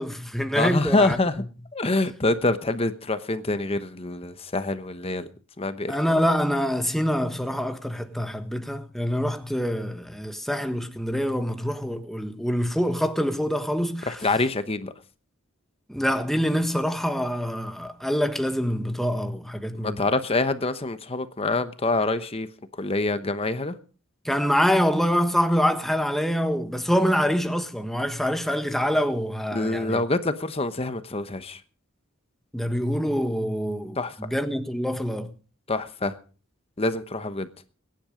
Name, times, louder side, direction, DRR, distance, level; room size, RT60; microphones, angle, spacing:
voice 1, 0.0-1.2 5.9-14.2 15.9-20.1 24.2-30.0 32.5-35.3, equal, ahead, 1.3 m, -25 dB
voice 2, 0.6-1.3 1.7-5.3 5.6-5.9 14.1-14.9 19.7-22.5 22.8-23.8 29.5-31.6 34.0-34.1 35.7-36.1 36.8-37.5, left 2 dB, 30° left, 1.0 m, -26 dB
21.5 x 10.5 x 5.1 m
head